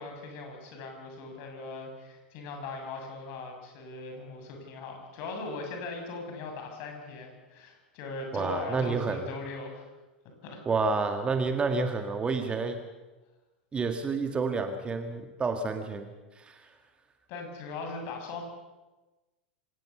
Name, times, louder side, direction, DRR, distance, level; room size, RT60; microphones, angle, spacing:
voice 1, 0.0-9.8 10.4-10.6 17.3-18.4, left 3 dB, 45° left, 3 dB, 6.7 m, -39 dB
voice 2, 8.3-9.2 10.7-12.8 13.7-16.1 16.4-16.7, right 4 dB, 20° right, 7 dB, 1.8 m, -29 dB
26.0 x 18.0 x 7.0 m, 1.2 s
figure-of-eight pair, 85°, 6 cm